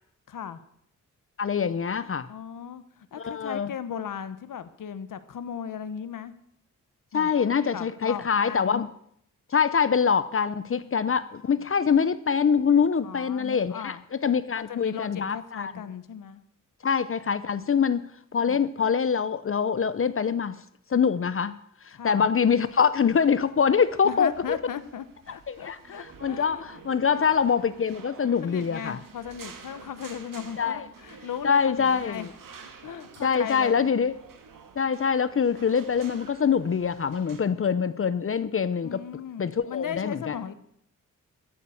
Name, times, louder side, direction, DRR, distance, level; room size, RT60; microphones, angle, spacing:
voice 1, 0.3-0.6 2.3-6.3 7.1-8.9 11.5-11.6 13.0-14.0 14.7-16.4 18.4-18.6 21.9-22.3 24.0-26.7 27.1-27.3 28.4-32.3 32.8-33.9 38.8-40.5, left 8 dB, 80° left, 13 dB, 1.1 m, -37 dB
voice 2, 1.4-2.3 3.2-3.7 7.1-8.8 9.5-15.7 16.8-18.1 18.3-20.6 20.9-21.5 21.8-24.6 25.5-29.0 30.6-30.8 31.4-32.3 33.2-34.2 34.8-39.0 39.4-40.3, left 6 dB, 45° left, 14 dB, 0.7 m, -24 dB
sound 1, 22.4-37.4, right 6 dB, 90° right, 1.9 m, -49 dB
14.0 x 9.3 x 7.0 m, 0.71 s
cardioid pair, 85°, 32 cm